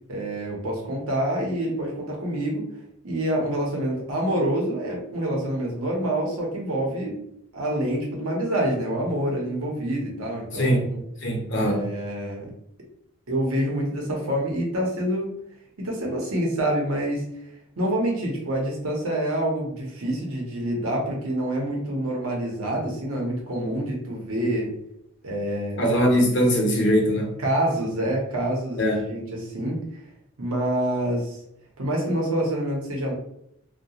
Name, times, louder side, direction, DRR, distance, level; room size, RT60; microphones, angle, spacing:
voice 1, 0.1-2.7 3.0-7.2 7.5-11.0 11.6-12.5 13.3-15.3 15.8-17.2 17.8-24.7 25.2-25.8 27.4-29.8 30.4-31.4 31.8-33.1, right 1 dB, 85° right, -1 dB, 0.8 m, -27 dB
voice 2, 10.5-10.8 11.2-12.0 25.8-27.4 28.8-29.1, equal, 55° left, -1 dB, 0.7 m, -21 dB
2.3 x 2.2 x 2.8 m, 0.75 s
head